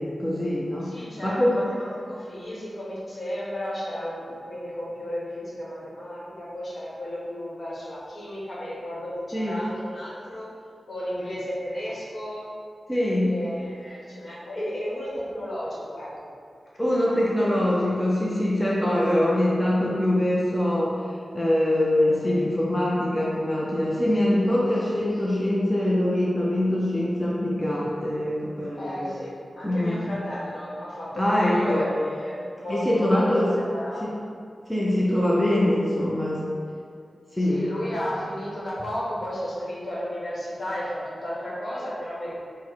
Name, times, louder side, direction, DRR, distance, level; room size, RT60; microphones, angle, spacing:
voice 1, 0.0-0.9 1.2-1.6 9.3-9.5 12.9-13.4 16.8-21.0 21.3-29.2 29.6-30.0 31.2-31.8 32.7-33.5 34.0-34.1 34.7-36.4 37.3-37.7, left 1 dB, 10° left, -6 dB, 0.5 m, -23 dB
voice 2, 0.8-10.5 10.9-12.4 13.3-16.3 24.2-24.4 28.8-29.3 29.6-34.2 37.4-42.4, equal, 50° left, -7 dB, 1.0 m, -33 dB
4.7 x 2.1 x 3.9 m, 2.2 s
wide cardioid pair, 125°, 0 cm